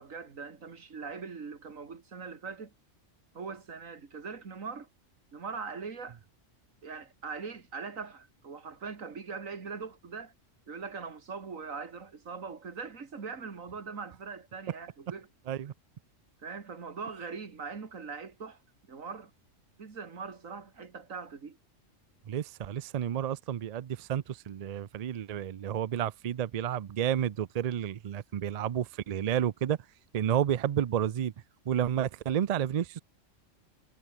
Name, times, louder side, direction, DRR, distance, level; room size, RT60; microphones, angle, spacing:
voice 1, 0.0-2.7 3.3-4.9 5.3-6.2 6.8-10.3 10.7-15.3 16.4-18.6 18.9-19.3 19.8-21.6, right 5 dB, 85° right, 2.5 m, -41 dB
voice 2, 22.3-29.8 30.1-31.3 31.7-33.0, right 9 dB, 70° right, 0.3 m, -31 dB
omnidirectional pair, 1.3 m